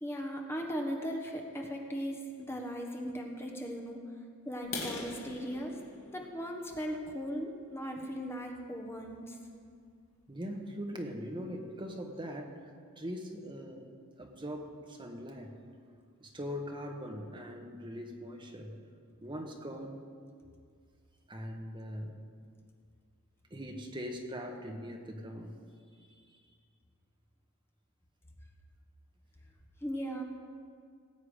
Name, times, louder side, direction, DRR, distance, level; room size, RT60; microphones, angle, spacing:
voice 1, 0.0-4.0 4.4-5.8 6.1-9.4 29.8-30.2, equal, 10° left, 1 dB, 1.3 m, -38 dB
sound 1, 4.6-8.4 8.9-9.1 9.5-9.6 10.1-10.2 10.5-10.6 11.1-11.2 11.4-11.9, left 3 dB, 55° left, 2.1 m, -44 dB
voice 2, 10.3-12.6 13.0-13.9 14.2-15.5 16.2-18.8 19.2-20.0 21.3-22.2 23.5-25.6 26.0-26.4, equal, 20° right, 2 dB, 1.2 m, -41 dB
18.5 x 8.0 x 5.1 m, 2.2 s
head